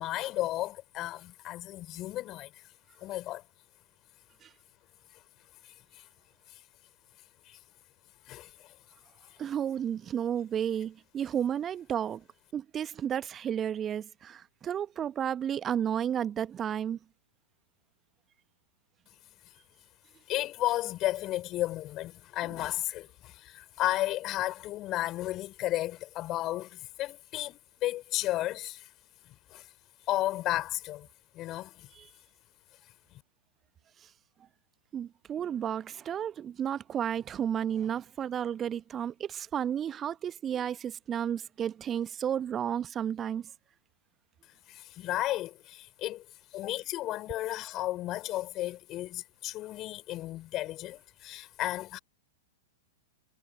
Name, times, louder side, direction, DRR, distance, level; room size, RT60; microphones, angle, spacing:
voice 1, 0.0-2.5 3.0-3.4 7.5-7.6 8.3-8.7 20.3-28.9 29.5-29.7 30.1-31.1 31.3-31.9 44.7-46.2 46.5-52.0, left 15 dB, 30° left, 5.4 m, -33 dB
voice 2, 9.4-12.2 12.5-17.0 31.9-32.1 34.9-43.5, right 9 dB, 25° right, 1.2 m, -32 dB
figure-of-eight pair, 105°, 0 cm